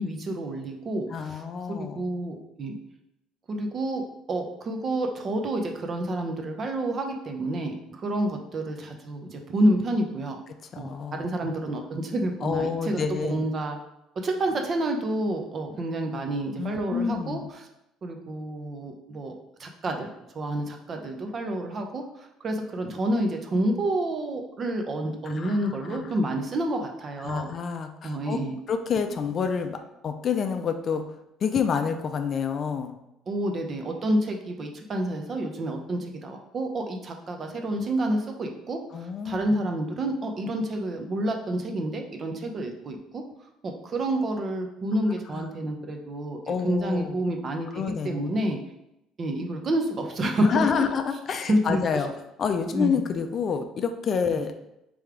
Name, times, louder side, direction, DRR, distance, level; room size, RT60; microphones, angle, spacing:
voice 1, 0.0-1.4 1.7-2.8 3.5-4.0 4.3-10.4 10.8-13.8 14.2-17.7 18.0-19.3 19.6-20.1 20.3-27.5 28.0-28.6 33.3-38.8 39.2-43.2 43.6-48.6 49.2-50.7 51.5-51.8 52.7-53.0 54.3-54.4, right 1 dB, 40° right, 4 dB, 0.6 m, -29 dB
voice 2, 1.1-2.1 10.7-11.6 12.4-13.5 16.6-17.5 25.2-26.1 27.2-28.4 28.7-29.8 30.0-31.1 31.4-33.0 38.9-39.5 45.3-45.4 46.4-47.2 47.7-48.4 50.4-52.1 52.4-54.5, left 6 dB, 45° left, 7 dB, 0.4 m, -28 dB
3.4 x 3.2 x 3.6 m, 0.85 s
supercardioid pair, 90°, 0 cm